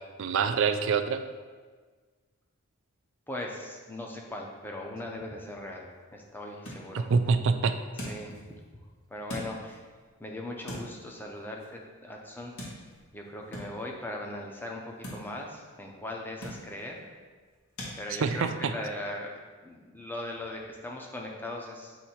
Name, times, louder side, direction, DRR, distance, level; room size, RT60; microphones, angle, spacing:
voice 1, 0.2-1.2 6.9-7.7 18.2-18.7, right 5 dB, 60° right, 9 dB, 0.4 m, -25 dB
voice 2, 3.3-7.1 8.1-8.4 9.1-9.8 10.2-12.5 13.1-17.0 18.0-19.3 19.6-22.0, left 1 dB, 10° left, 0 dB, 0.6 m, -39 dB
sound 1, 5.6-18.0, equal, 80° left, 1.7 m, -46 dB
8.0 x 2.7 x 4.3 m, 1.5 s
head